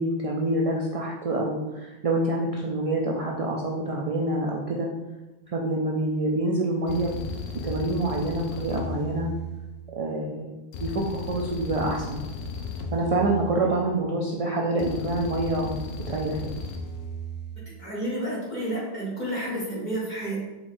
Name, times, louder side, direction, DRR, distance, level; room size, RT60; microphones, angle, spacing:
voice 1, 0.0-4.9 5.5-7.2 7.6-9.3 10.0-10.5 10.8-12.2 12.9-15.8 16.1-16.5, right 2 dB, 50° right, -2 dB, 0.4 m, -26 dB
sound 1, 6.9-10.0 10.7-14.0 14.8-17.6, left 2 dB, 75° left, 0.8 m, -35 dB
voice 2, 17.8-20.4, right 1 dB, 45° left, -7 dB, 1.7 m, -30 dB
4.6 x 3.9 x 2.6 m, 1.1 s
omnidirectional pair, 1.1 m